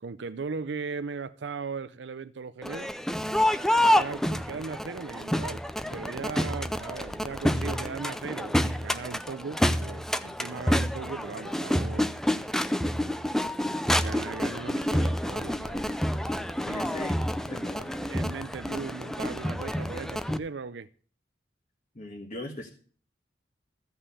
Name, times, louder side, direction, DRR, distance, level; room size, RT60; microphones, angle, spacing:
voice 1, 0.0-2.9 3.7-5.6 5.9-12.2 14.0-15.8 16.7-16.8 17.5-17.6 18.1-20.9, right 5 dB, 80° right, 0.5 m, -38 dB
Crowd, 2.6-20.4, equal, 5° left, 0.5 m, -28 dB
voice 2, 16.7-17.2 17.4-18.0 22.0-22.7, left 2 dB, 40° left, 1.6 m, -39 dB
14.5 x 5.6 x 8.3 m
head